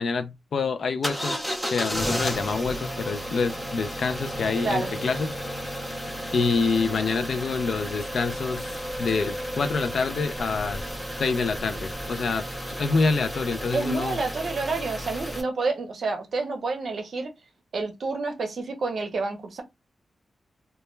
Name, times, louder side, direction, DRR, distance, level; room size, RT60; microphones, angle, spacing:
voice 1, 0.0-1.4 1.7-5.3 6.3-8.7 9.0-10.9 11.2-14.2, left 4 dB, 65° left, 0.3 m, -26 dB
sound 1, 1.0-15.4, equal, 5° left, 0.5 m, -33 dB
voice 2, 4.6-4.9 13.7-17.3 17.7-19.6, right 3 dB, 55° right, 0.7 m, -29 dB
2.2 x 2.1 x 3.0 m
wide cardioid pair, 155°, 0 cm